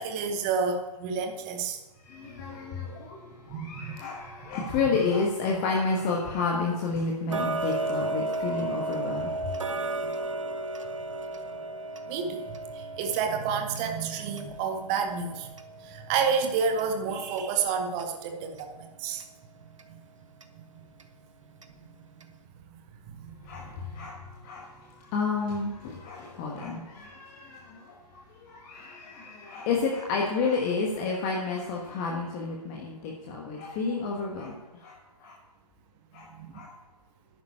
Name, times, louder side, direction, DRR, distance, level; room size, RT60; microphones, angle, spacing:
voice 1, 0.0-1.8 3.5-4.0 4.6-4.7 9.8-10.1 12.1-15.5 15.8-19.2 19.9-20.0 20.5-20.6 23.1-23.5 23.9-24.1 36.3-36.6, right 5 dB, 10° right, 6 dB, 0.7 m, -30 dB
voice 2, 2.1-3.2 3.5-9.4 23.5-23.7 23.9-24.2 24.4-24.6 25.1-27.8 28.1-34.6 34.8-34.9 35.2-35.3 36.1-36.2 36.5-36.7, left 4 dB, 15° left, -1 dB, 1.3 m, -30 dB
Tick-tock, 7.3-18.1 18.6-18.7 19.2-19.3 19.8-19.9 20.4-20.5 21.0-21.1 21.6-21.7 22.2-22.3, right 2 dB, 50° right, 1.4 m, -34 dB
11.0 x 9.6 x 8.7 m, 1.1 s
figure-of-eight pair, 145°, 21 cm